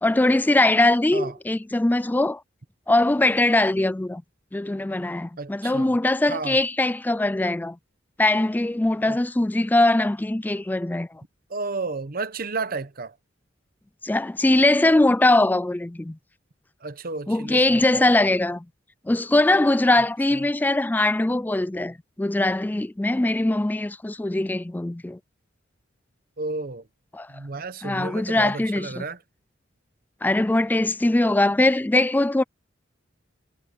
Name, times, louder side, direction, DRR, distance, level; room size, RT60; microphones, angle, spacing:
voice 1, 0.0-2.4 2.9-4.2 4.5-7.8 8.2-11.2 14.0-16.2 17.3-18.7 19.1-25.2 27.1-27.3 27.8-29.0 30.2-32.4, left 2 dB, 10° left, 0.3 m, -21 dB
voice 2, 5.4-6.0 6.3-6.6 9.1-9.2 11.5-13.2 16.8-18.1 20.0-20.1 20.3-20.5 26.4-26.9 27.3-29.2, right 3 dB, 50° right, 1.0 m, -32 dB
head